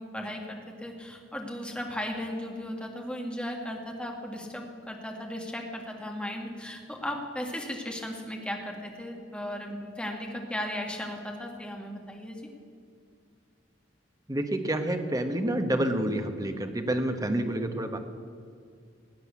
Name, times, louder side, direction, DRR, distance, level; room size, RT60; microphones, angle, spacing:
voice 1, 0.0-12.5, left 1 dB, 5° left, 1 dB, 2.1 m, -36 dB
voice 2, 14.3-18.0, right 1 dB, 20° right, 6 dB, 1.3 m, -28 dB
17.0 x 9.5 x 8.4 m, 2.3 s
head